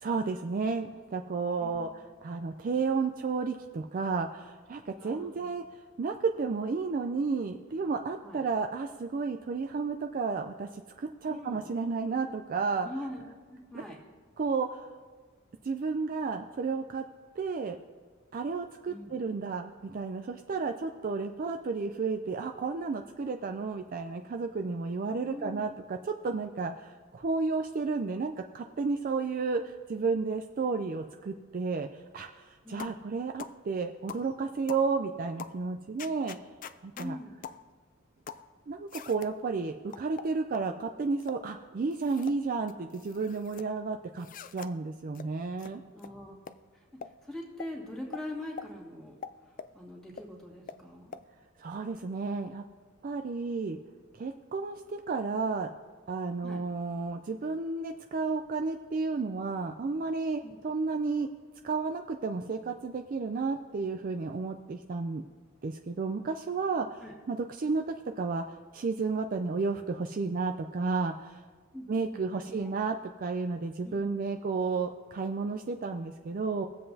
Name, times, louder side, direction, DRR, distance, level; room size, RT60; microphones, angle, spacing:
voice 1, 0.0-1.9 2.2-5.6 6.0-12.9 13.7-13.8 14.4-14.9 15.6-17.0 17.4-17.8 18.3-36.4 36.8-37.2 38.7-44.3 44.5-45.8 51.6-52.6 53.0-53.8 54.2-55.7 56.1-61.3 61.6-65.2 65.6-71.4 71.9-76.6, right 4 dB, 40° right, 5 dB, 0.4 m, -32 dB
voice 2, 1.6-2.0 4.9-5.5 8.2-8.4 11.3-11.6 12.8-14.0 18.9-19.1 25.2-25.7 32.6-33.0 36.9-37.4 45.9-46.4 46.7-46.9 47.2-49.2 49.5-51.2 56.4-56.7 60.4-60.5 67.0-67.1 71.7-72.7 73.8-74.2, left 1 dB, ahead, -3 dB, 2.2 m, -43 dB
sound 1, 32.8-33.0 33.4-33.6 34.1-34.3 34.7-34.9 35.4-35.6 36.0-37.1 37.4-37.6 38.3-38.5 38.9-39.3 39.9-40.7 41.2-41.4 41.9-42.4 42.7-43.7 44.2-44.7 45.1-45.3 45.6-45.7 46.0-46.1 46.5-46.6 47.0-47.1 47.6-47.7 48.1-48.2 48.6-48.7 49.2-49.7 50.2-50.3 50.7-50.8 51.1-51.2, left 6 dB, 40° left, 0.3 m, -43 dB
21.0 x 7.7 x 2.7 m, 1.5 s
head